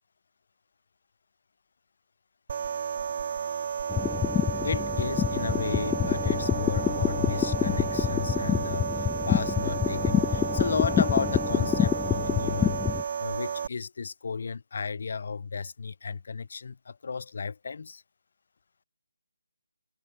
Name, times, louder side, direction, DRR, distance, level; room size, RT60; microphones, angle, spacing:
sound 1, 2.5-13.7, right 7 dB, 35° right, 0.7 m, -32 dB
sound 2, 3.9-13.0, left 10 dB, 10° left, 0.3 m, -27 dB
voice 1, 4.6-12.8 13.2-18.0, left 5 dB, 45° left, 1.7 m, -34 dB
figure-of-eight pair, 150°, 0 cm